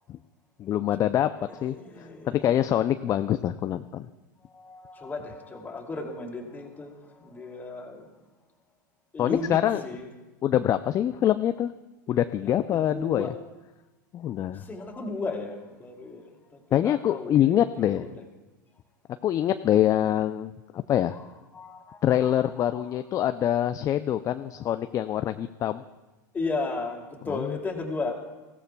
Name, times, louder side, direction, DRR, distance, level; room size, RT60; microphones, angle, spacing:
voice 1, 0.6-1.8 2.3-4.1 9.2-9.8 10.4-11.7 12.1-13.3 14.1-14.6 16.7-18.1 19.2-21.2 22.0-25.8 27.3-27.6, left 11 dB, 30° left, 10 dB, 0.4 m, -25 dB
voice 2, 1.4-2.6 4.4-8.1 9.1-10.1 12.4-13.3 14.3-17.6 17.9-18.1 21.1-21.2 21.5-22.8 24.6-24.8 26.3-28.2, left 3 dB, 15° left, 0 dB, 2.7 m, -35 dB
21.5 x 16.0 x 2.3 m, 1.1 s
hypercardioid pair, 105°, 11 cm